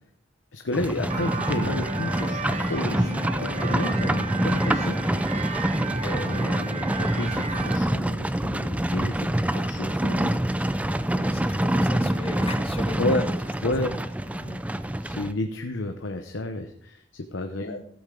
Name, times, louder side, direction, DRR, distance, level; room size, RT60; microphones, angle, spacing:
voice 1, 0.5-5.0 6.0-10.9 11.2-11.3 13.0-13.2 13.6-13.9 15.0-17.8, left 2 dB, 85° left, 6 dB, 0.9 m, -31 dB
Livestock farm animals working animals, 0.7-15.3, right 1 dB, 5° right, 0.4 m, -26 dB
sound 1, 1.1-7.8, right 3 dB, 35° right, 0.9 m, -33 dB
voice 2, 11.1-13.4 13.9-14.7 17.7-17.9, left 2 dB, 30° left, 8 dB, 1.0 m, -38 dB
15.0 x 8.7 x 3.9 m, 0.64 s
head